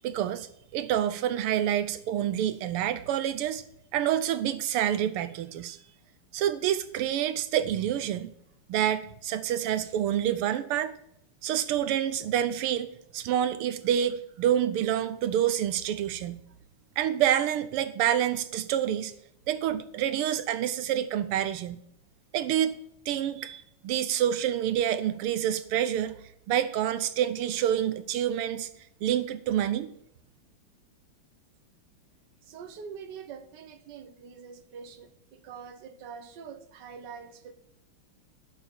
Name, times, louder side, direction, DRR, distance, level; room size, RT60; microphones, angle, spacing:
voice 1, 0.0-3.6 3.9-5.8 6.3-8.3 8.7-10.9 11.4-16.4 17.0-19.1 19.5-21.8 22.3-22.7 23.0-26.2 26.5-28.7 29.0-29.9, right 10 dB, 85° right, 1.7 m, -27 dB
voice 2, 32.4-37.5, right 6 dB, 55° right, 1.7 m, -44 dB
10.5 x 6.5 x 8.9 m
omnidirectional pair, 2.4 m